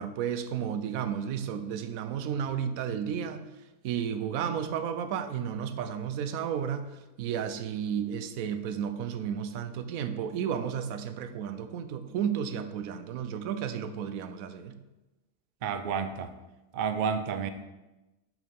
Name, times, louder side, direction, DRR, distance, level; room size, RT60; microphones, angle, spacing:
voice 1, 0.0-3.5 3.8-14.8, right 8 dB, 85° right, 10 dB, 1.0 m, -33 dB
voice 2, 15.6-16.3 16.7-17.5, right 6 dB, 60° right, 9 dB, 0.5 m, -30 dB
6.1 x 4.7 x 5.3 m, 1.0 s
omnidirectional pair, 1.4 m